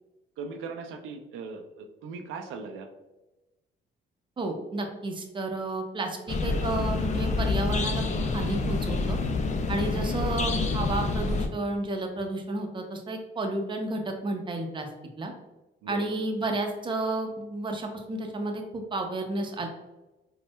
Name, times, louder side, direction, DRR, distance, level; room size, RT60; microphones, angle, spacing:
voice 1, 0.4-2.9 15.8-16.1, right 4 dB, 85° right, 5 dB, 0.4 m, -39 dB
voice 2, 4.4-8.0 8.3-9.2 9.7-14.9 15.2-15.3 15.9-19.7, right 2 dB, 25° right, 3 dB, 0.6 m, -31 dB
sound 1, 6.3-11.5, left 3 dB, 35° left, 0.4 m, -27 dB
4.3 x 2.1 x 2.2 m, 1.0 s
cardioid pair, 90°, 20 cm